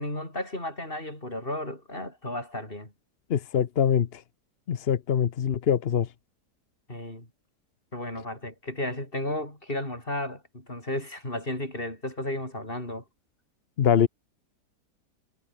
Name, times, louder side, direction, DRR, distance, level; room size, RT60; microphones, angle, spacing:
voice 1, 0.0-2.9 6.9-7.3 7.9-13.0, left 1 dB, 30° left, 7.5 m, -33 dB
voice 2, 3.3-4.2 4.7-6.1 13.8-14.1, left 8 dB, 50° left, 0.8 m, -23 dB
omnidirectional pair, 1.8 m